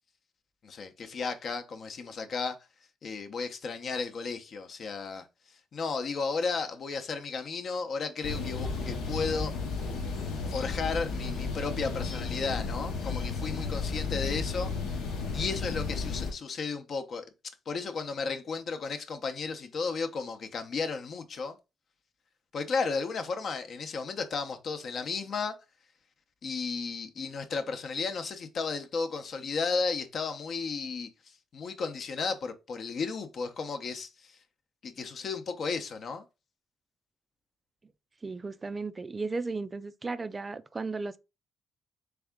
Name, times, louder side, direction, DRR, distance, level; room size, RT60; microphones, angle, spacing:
voice 1, 0.6-2.6 3.0-5.2 5.7-9.5 10.5-14.7 15.3-17.3 17.7-21.6 22.5-25.5 26.4-31.1 31.5-34.4 34.8-36.2, left 4 dB, 55° left, 0.8 m, -34 dB
sound 1, 8.2-16.3, left 4 dB, 90° left, 1.0 m, -33 dB
voice 2, 38.2-41.2, right 3 dB, 30° right, 0.3 m, -35 dB
3.5 x 3.4 x 3.5 m
cardioid pair, 90°, 0 cm